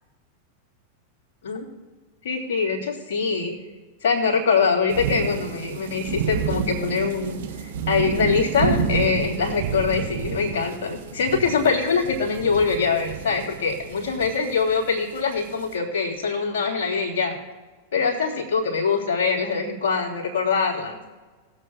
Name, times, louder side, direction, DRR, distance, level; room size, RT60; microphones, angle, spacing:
voice 1, 2.2-3.5 4.0-17.3 17.9-21.0, left 5 dB, 55° left, -2 dB, 3.1 m, -23 dB
sound 1, 4.9-15.7, right 7 dB, 55° right, 1.0 m, -30 dB
20.5 x 7.8 x 2.4 m, 1.3 s
figure-of-eight pair, 90°, 0 cm